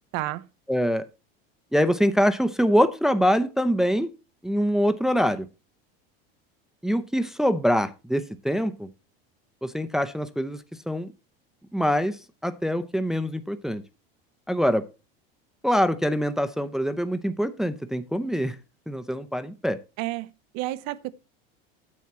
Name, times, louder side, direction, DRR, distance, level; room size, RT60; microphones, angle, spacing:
voice 1, 0.1-0.4 20.0-21.1, right 17 dB, 60° right, 0.9 m, -31 dB
voice 2, 0.7-1.1 1.7-4.1 4.4-5.5 6.8-8.9 9.6-11.1 11.7-12.2 12.4-13.8 14.5-14.9 15.6-18.5 18.9-19.8, equal, ahead, 0.7 m, -24 dB
9.6 x 7.4 x 4.3 m
supercardioid pair, 115°, 29 cm